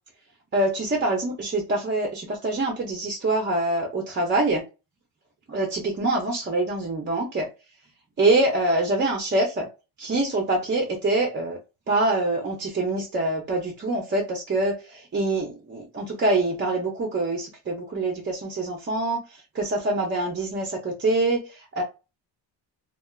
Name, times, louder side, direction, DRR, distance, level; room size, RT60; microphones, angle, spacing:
voice 1, 0.5-4.6 5.5-7.5 8.2-9.7 10.0-11.6 11.9-19.2 19.5-21.8, right 2 dB, 25° right, 0 dB, 0.7 m, -25 dB
3.3 x 2.4 x 2.3 m, 0.29 s
cardioid pair, 140°, 46 cm